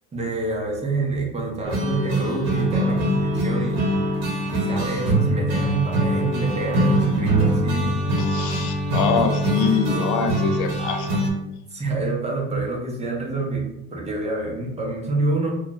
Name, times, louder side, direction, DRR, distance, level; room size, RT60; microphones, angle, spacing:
voice 1, 0.1-3.8 4.5-8.0 11.7-15.5, right 3 dB, 20° right, -1 dB, 0.9 m, -27 dB
sound 1, 1.6-11.3, right 1 dB, 60° right, 1.0 m, -23 dB
voice 2, 8.2-11.3, left 6 dB, 75° left, 6 dB, 0.5 m, -25 dB
2.7 x 2.4 x 4.1 m, 0.88 s
supercardioid pair, 110°, 30 cm